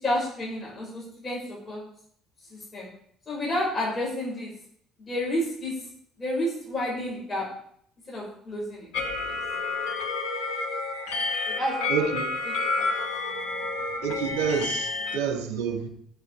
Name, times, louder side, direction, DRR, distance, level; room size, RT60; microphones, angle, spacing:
voice 1, 0.0-1.8 2.5-2.9 3.3-4.5 5.0-5.7 6.2-7.4 8.1-8.9 9.2-9.4 11.5-11.9 12.8-13.0, left 1 dB, 25° left, -4 dB, 6.5 m, -30 dB
sound 1, 8.9-15.2, left 3 dB, 65° left, 2.2 m, -30 dB
voice 2, 11.9-12.2 14.0-15.9, right 6 dB, 65° right, 0 dB, 2.8 m, -28 dB
15.0 x 8.0 x 4.9 m, 0.67 s
figure-of-eight pair, 55°, 0 cm